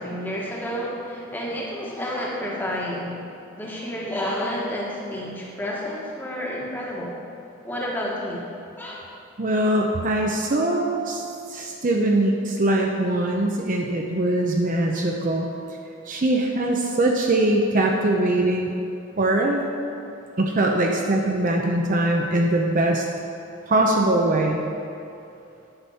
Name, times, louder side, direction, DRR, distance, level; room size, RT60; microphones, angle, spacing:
voice 1, 0.0-3.2 3.6-7.1 7.6-8.4 8.8-8.9, equal, 10° left, -4 dB, 1.4 m, -30 dB
voice 2, 9.4-11.2 11.5-15.5 16.1-18.7 19.2-19.6 20.4-23.1 23.7-24.6, right 1 dB, 35° right, 1 dB, 0.6 m, -22 dB
10.5 x 5.9 x 5.6 m, 2.6 s
head